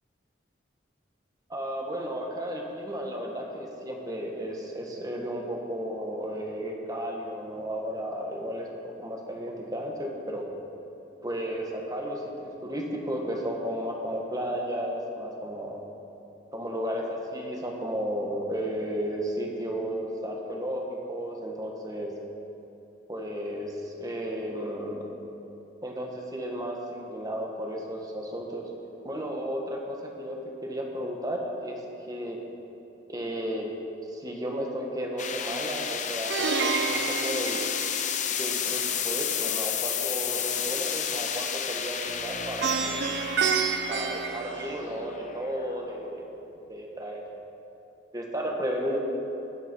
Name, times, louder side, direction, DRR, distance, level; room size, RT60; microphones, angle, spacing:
voice 1, 1.5-10.5 11.2-15.8 16.5-22.1 23.1-25.1 25.8-28.6 29.0-31.8 32.1-32.4 33.1-33.7 34.1-37.6 38.4-43.1 43.9-46.3 46.7-47.2 48.1-49.0, equal, 20° right, 0 dB, 1.6 m, -33 dB
sound 1, 35.2-46.3, left 8 dB, 45° left, 0.8 m, -32 dB
Plucked string instrument, 36.3-38.5 42.6-45.2, right 5 dB, 70° right, 0.7 m, -29 dB
Bass guitar, 42.1-46.1, equal, 85° right, 3.4 m, -48 dB
19.0 x 9.4 x 4.6 m, 2.9 s
head